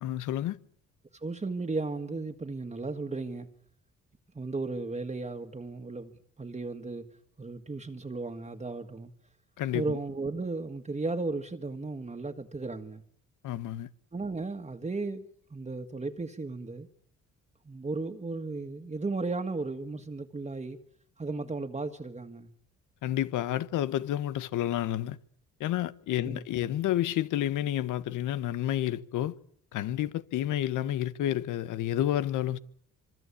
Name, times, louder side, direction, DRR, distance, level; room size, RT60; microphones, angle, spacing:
voice 1, 0.0-0.6 9.6-10.0 13.4-13.9 23.0-25.2 25.6-29.3 29.7-32.6, left 12 dB, 85° left, 1.3 m, -30 dB
voice 2, 1.1-3.5 4.3-6.1 6.4-7.1 7.4-9.1 9.7-13.0 14.1-16.9 17.6-20.8 21.2-22.5 26.2-26.4, right 3 dB, 20° right, 1.9 m, -35 dB
26.0 x 24.5 x 8.5 m
cardioid pair, 90°, 30 cm